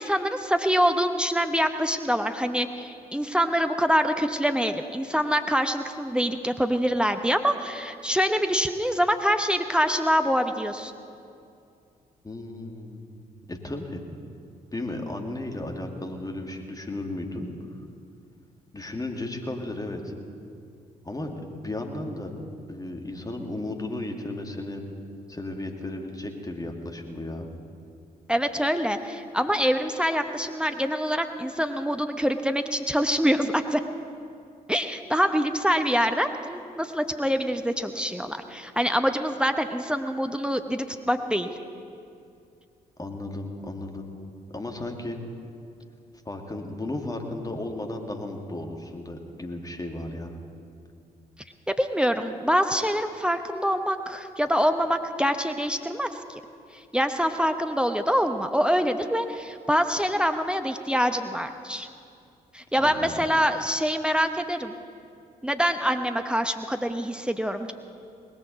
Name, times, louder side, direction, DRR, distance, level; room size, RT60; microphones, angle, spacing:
voice 1, 0.0-10.9 28.3-33.8 34.7-41.5 51.7-56.4 56.7-61.9 62.5-64.7 65.4-67.7, equal, 5° right, 7 dB, 0.8 m, -25 dB
voice 2, 12.2-13.2 13.5-14.0 14.7-17.5 18.7-20.1 21.0-22.3 22.7-24.8 25.3-27.5 43.0-44.1 44.5-45.2 46.3-50.3 62.8-63.3, left 2 dB, 15° left, 3 dB, 2.1 m, -34 dB
19.0 x 14.5 x 4.0 m, 2.5 s
figure-of-eight pair, 40°, 20 cm